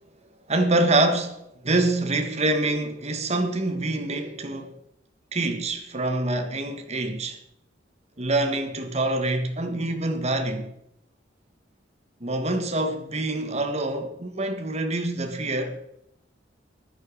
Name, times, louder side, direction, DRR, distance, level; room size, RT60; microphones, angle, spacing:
voice 1, 0.5-4.7 5.3-7.4 8.2-10.7 12.2-15.8, right 2 dB, 35° right, 1.6 m, -25 dB
14.5 x 10.0 x 6.4 m
head